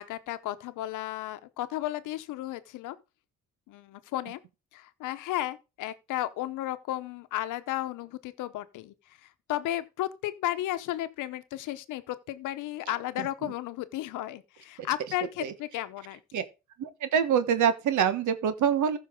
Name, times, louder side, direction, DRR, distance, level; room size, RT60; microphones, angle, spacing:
voice 1, 0.0-3.0 3.7-4.4 4.7-8.9 9.2-16.4, left 14 dB, 90° left, 0.9 m, -34 dB
voice 2, 13.2-13.5 15.4-15.5 16.3-16.4 16.8-19.0, right 8 dB, 75° right, 1.3 m, -26 dB
14.5 x 5.7 x 3.7 m
cardioid pair, 90°, 30 cm